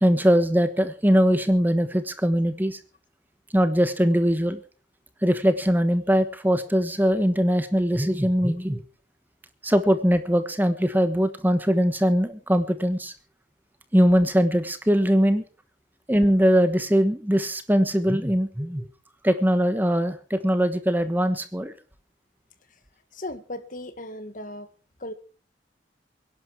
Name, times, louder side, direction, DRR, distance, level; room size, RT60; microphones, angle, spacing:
voice 1, 0.0-2.8 3.5-4.6 5.2-8.8 9.6-13.1 13.9-15.4 16.1-18.9 19.2-21.7, equal, 10° right, 10 dB, 1.2 m, -21 dB
voice 2, 23.1-24.7 25.0-25.1, left 1 dB, 45° left, 10 dB, 1.9 m, -36 dB
23.5 x 11.5 x 4.6 m, 0.38 s
head